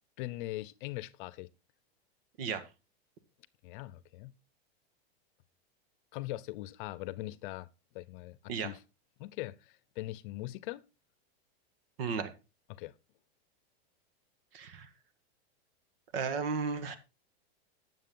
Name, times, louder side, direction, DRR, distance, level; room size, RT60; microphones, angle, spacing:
voice 1, 0.2-1.5 3.6-4.3 6.1-7.7 7.9-8.8 9.2-10.8 12.7-12.9, left 17 dB, 55° left, 0.7 m, -41 dB
voice 2, 2.4-2.7 8.5-8.7 12.0-12.3 14.5-14.9 16.1-17.0, right 5 dB, 65° right, 1.6 m, -34 dB
9.7 x 7.5 x 3.7 m
supercardioid pair, 135°, 31 cm